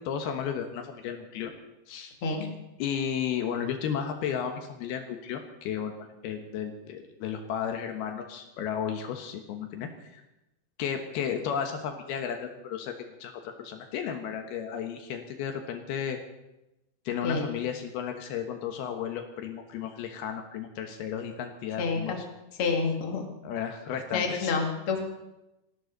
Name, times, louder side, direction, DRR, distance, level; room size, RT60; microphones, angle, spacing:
voice 1, 0.0-1.5 1.9-2.1 2.8-10.2 10.8-16.2 17.1-22.3 23.4-24.5, left 8 dB, 80° left, 5 dB, 3.2 m, -33 dB
voice 2, 21.8-22.2 22.6-23.3 24.1-25.0, left 4 dB, 40° left, 2 dB, 2.8 m, -28 dB
28.5 x 12.5 x 4.0 m, 0.93 s
omnidirectional pair, 4.5 m